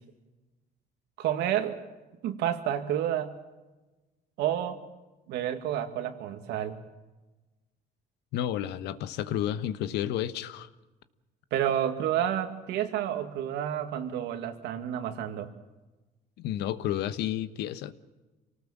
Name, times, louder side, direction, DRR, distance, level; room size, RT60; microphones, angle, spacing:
voice 1, 1.2-1.8 2.2-3.4 4.4-4.8 5.3-6.8 11.5-15.5, right 10 dB, 85° right, 7 dB, 2.4 m, -30 dB
voice 2, 8.3-10.7 16.4-17.9, left 11 dB, 85° left, 14 dB, 1.2 m, -31 dB
27.0 x 19.0 x 7.4 m, 1.1 s
cardioid pair, 110°, 17 cm